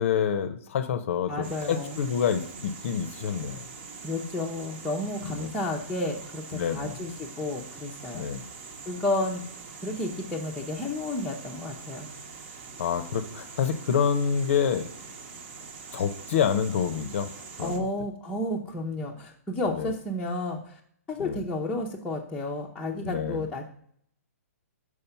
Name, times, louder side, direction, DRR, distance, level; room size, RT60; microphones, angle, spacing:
voice 1, 0.0-3.6 5.2-5.5 6.5-6.9 8.1-8.4 12.8-14.9 15.9-17.3 17.6-17.9 19.7-19.9 21.2-21.4 23.0-23.4, left 7 dB, 55° left, 11 dB, 0.6 m, -27 dB
voice 2, 1.3-2.0 4.0-8.3 8.9-9.4 9.8-12.1 17.6-20.8 21.1-23.7, left 2 dB, 5° left, -5 dB, 0.6 m, -32 dB
sound 1, 1.4-17.8, right 4 dB, 45° right, 1.0 m, -44 dB
5.5 x 4.8 x 5.7 m, 0.64 s
hypercardioid pair, 150°, 8 cm